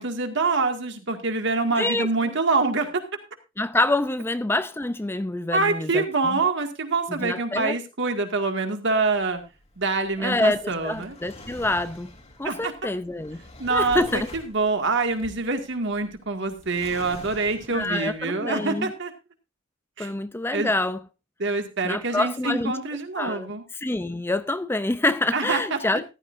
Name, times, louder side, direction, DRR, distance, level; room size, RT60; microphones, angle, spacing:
voice 1, 0.0-3.0 5.5-9.4 9.8-11.1 12.4-12.7 13.6-19.1 20.0-20.1 20.5-20.7 21.4-23.6 25.3-25.8, right 3 dB, 65° right, 2.1 m, -25 dB
voice 2, 1.8-2.1 3.6-6.4 7.1-7.8 10.2-12.1 12.4-13.4 13.7-14.3 17.7-18.9 20.0-21.0 21.8-22.7 23.2-26.1, left 2 dB, 10° left, 0.5 m, -26 dB
Drawer open or close, 8.9-18.2, left 1 dB, 35° left, 2.2 m, -45 dB
14.5 x 12.0 x 2.6 m
head